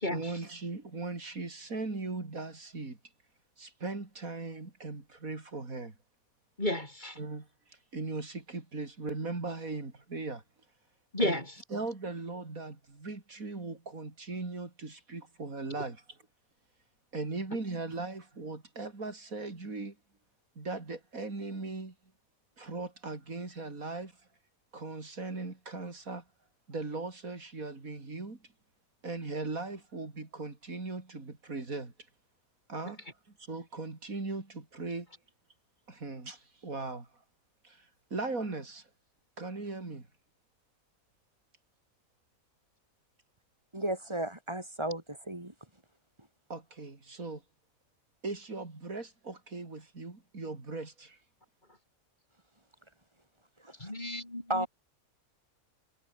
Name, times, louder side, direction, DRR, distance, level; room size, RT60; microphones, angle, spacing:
voice 1, 0.1-3.0 3.6-5.9 7.2-7.5 7.9-10.4 11.2-11.4 11.7-16.2 17.1-20.0 20.6-21.9 22.6-24.1 24.7-26.2 26.7-28.4 29.0-31.9 32.7-33.0 33.5-35.1 35.9-37.1 37.6-37.9 38.1-38.9 39.4-40.1 46.5-47.4 48.2-51.2, right 3 dB, 80° right, 4.3 m, -38 dB
voice 2, 6.6-7.1 11.1-11.4 53.8-54.7, left 1 dB, 35° left, 4.9 m, -32 dB
voice 3, 43.7-45.5 53.6-53.9 54.5-54.7, right 1 dB, 20° right, 3.5 m, -34 dB
omnidirectional pair, 1.5 m